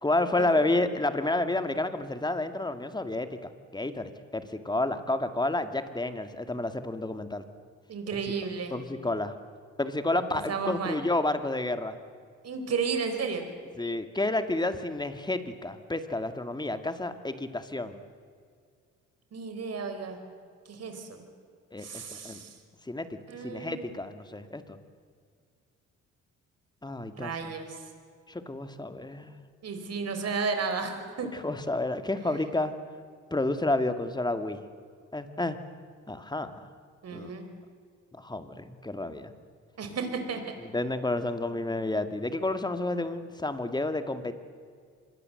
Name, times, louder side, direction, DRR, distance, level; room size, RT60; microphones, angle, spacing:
voice 1, 0.0-7.5 8.1-8.2 8.7-9.3 9.8-12.0 13.8-18.0 21.7-22.4 22.9-23.1 23.4-24.8 26.8-27.3 28.3-29.3 31.3-32.7 33.3-34.6 35.1-35.6 36.1-36.5 37.1-37.3 38.1-39.3 40.6-44.3, left 2 dB, 15° left, 9 dB, 2.1 m, -30 dB
voice 2, 7.9-8.8 10.5-11.0 12.4-13.4 19.3-20.2 20.7-21.2 21.8-22.5 23.3-23.9 27.2-27.8 29.6-31.3 37.0-37.5 39.8-40.4, right 5 dB, 55° right, 6 dB, 4.8 m, -33 dB
26.0 x 21.5 x 7.9 m, 2.1 s
cardioid pair, 90°, 30 cm